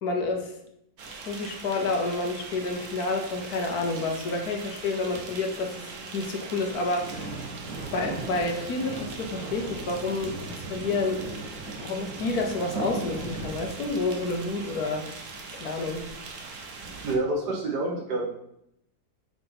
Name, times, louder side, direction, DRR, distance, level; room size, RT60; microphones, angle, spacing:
voice 1, 0.0-0.5 1.2-5.9 6.1-7.4 7.6-11.2 11.8-15.1 15.5-16.1, left 3 dB, 65° left, 3 dB, 1.4 m, -29 dB
sound 1, 1.0-17.2, right 3 dB, 55° right, 1.2 m, -38 dB
voice 2, 17.0-18.3, right 2 dB, 70° right, 1 dB, 2.0 m, -27 dB
4.9 x 4.8 x 5.8 m, 0.77 s
omnidirectional pair, 1.8 m